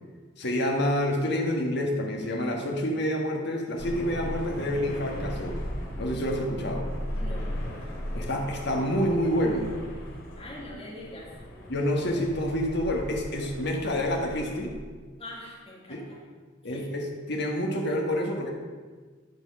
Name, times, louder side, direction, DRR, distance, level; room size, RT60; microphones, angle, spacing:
voice 1, 0.4-5.6 6.0-6.9 8.1-9.7 11.7-14.7 15.9-16.0 16.6-18.5, equal, 60° left, 1 dB, 1.6 m, -28 dB
sound 1, 3.8-14.7, equal, 80° left, 2.8 m, -37 dB
voice 2, 7.1-7.9 10.3-11.3 15.2-16.2 16.6-16.9, left 1 dB, 30° left, -4 dB, 2.6 m, -44 dB
11.5 x 4.8 x 6.3 m, 1.5 s
head